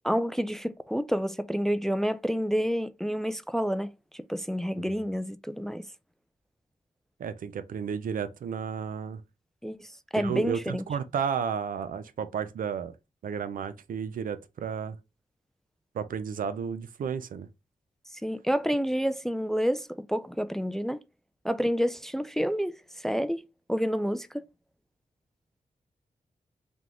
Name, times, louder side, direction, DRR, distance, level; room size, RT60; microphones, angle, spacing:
voice 1, 0.0-5.8 9.6-10.8 18.1-21.0 21.4-23.4 23.7-24.4, equal, 5° left, 0.3 m, -29 dB
voice 2, 7.2-9.2 10.2-12.9 13.2-15.0 15.9-17.5, right 7 dB, 85° right, 0.5 m, -32 dB
3.7 x 3.5 x 2.9 m
wide cardioid pair, 95°, 14 cm